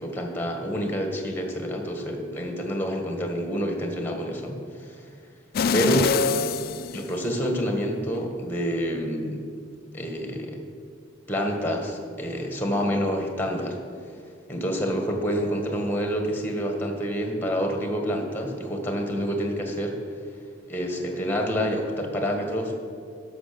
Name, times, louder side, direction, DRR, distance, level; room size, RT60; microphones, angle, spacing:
voice 1, 0.0-5.1 5.7-6.1 6.9-9.4 9.9-10.6 11.3-13.8 14.5-20.0 20.7-22.7, equal, 10° left, 3 dB, 1.5 m, -28 dB
sound 1, 5.5-7.7 8.1-8.2, left 6 dB, 50° left, 0.3 m, -25 dB
12.5 x 5.6 x 6.8 m, 2.3 s
head